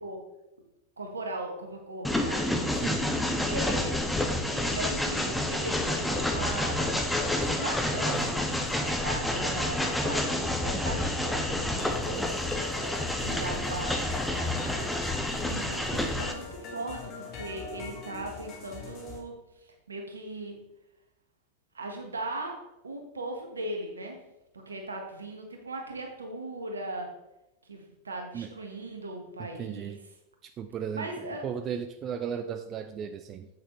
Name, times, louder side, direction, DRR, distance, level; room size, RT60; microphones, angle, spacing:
voice 1, 1.0-2.4 2.7-2.8 3.5-4.0 4.4-19.3 19.6-20.6 21.7-22.5 22.8-24.2 24.7-27.1 27.6-30.0 30.9-31.5, right 2 dB, 75° right, 3 dB, 1.3 m, -39 dB
Train, 2.0-16.3, left 1 dB, 5° left, 0.7 m, -29 dB
voice 2, 2.7-3.0 28.3-28.5 29.4-30.0 30.4-33.5, right 8 dB, 30° right, 8 dB, 0.4 m, -36 dB
sound 1, 11.8-19.2, left 5 dB, 35° left, 1.5 m, -42 dB
7.9 x 6.6 x 3.2 m, 0.93 s
figure-of-eight pair, 90°, 0 cm